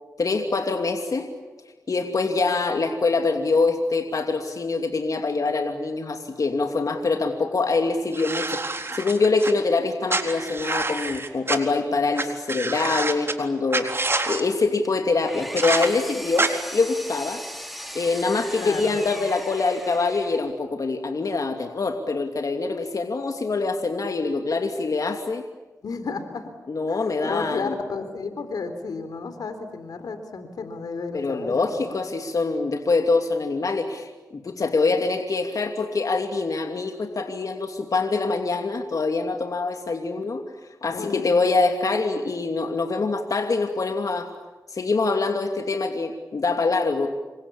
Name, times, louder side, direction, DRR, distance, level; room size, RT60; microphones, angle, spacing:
voice 1, 0.2-1.3 1.9-13.9 14.3-17.4 17.9-25.4 26.7-27.7 31.1-40.4 40.8-44.3 44.7-47.1, left 3 dB, 65° left, 5 dB, 2.8 m, -24 dB
sound 1, 8.1-9.5 10.1-11.6 12.2-12.3 12.5-13.3 13.7-14.4 15.6-15.9 16.4-16.5, right 3 dB, 40° right, 3.9 m, -26 dB
Engine, 14.8-20.6, equal, ahead, 4.7 m, -38 dB
voice 2, 18.6-19.0 25.8-26.5 26.9-32.0 40.9-41.4, left 4 dB, 90° left, 9 dB, 3.7 m, -32 dB
28.5 x 24.5 x 8.6 m, 1.2 s
cardioid pair, 60°, 6 cm